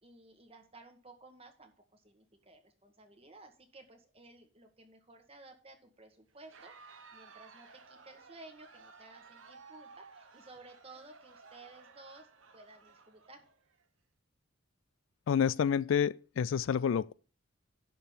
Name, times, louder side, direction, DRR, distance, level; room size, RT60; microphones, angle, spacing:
voice 1, 0.0-12.3 12.5-13.4, right 2 dB, 30° right, 1.5 m, -55 dB
Crowd, 6.3-13.8, right 4 dB, 75° right, 1.1 m, -56 dB
voice 2, 15.3-17.1, left 7 dB, 75° left, 0.3 m, -29 dB
11.0 x 3.8 x 7.2 m
head